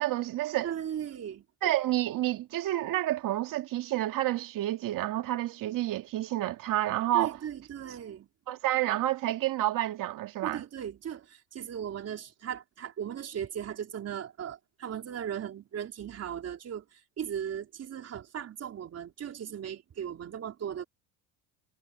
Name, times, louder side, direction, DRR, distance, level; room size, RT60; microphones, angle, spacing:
voice 1, 0.0-0.7 1.6-7.4 8.5-10.6, right 14 dB, 55° right, 2.4 m, -29 dB
voice 2, 0.6-1.4 7.1-8.3 10.4-20.8, right 9 dB, 40° right, 4.1 m, -37 dB
supercardioid pair, 100°, 38 cm